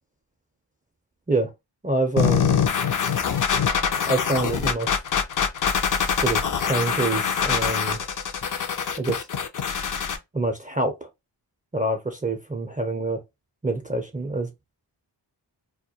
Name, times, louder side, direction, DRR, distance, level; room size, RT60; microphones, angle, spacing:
voice 1, 1.8-2.6 4.1-5.0 6.2-8.0 9.0-9.3 10.3-11.1 11.7-13.2 13.6-14.5, right 2 dB, 20° right, 0.5 m, -26 dB
sound 1, 2.2-10.2, left 7 dB, 45° left, 0.5 m, -24 dB
2.2 x 2.1 x 2.7 m
cardioid pair, 50°, 45 cm